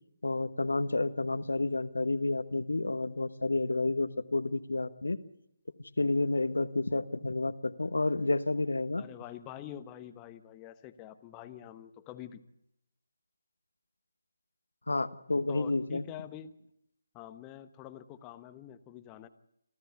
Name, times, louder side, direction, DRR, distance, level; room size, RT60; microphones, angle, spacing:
voice 1, 0.2-5.2 5.8-9.1 14.9-16.0, left 2 dB, 80° left, 12 dB, 1.3 m, -30 dB
voice 2, 9.0-12.4 15.5-16.6 17.1-19.3, left 11 dB, 15° left, 9 dB, 1.0 m, -46 dB
27.5 x 13.5 x 8.2 m, 0.77 s
figure-of-eight pair, 155°, 0 cm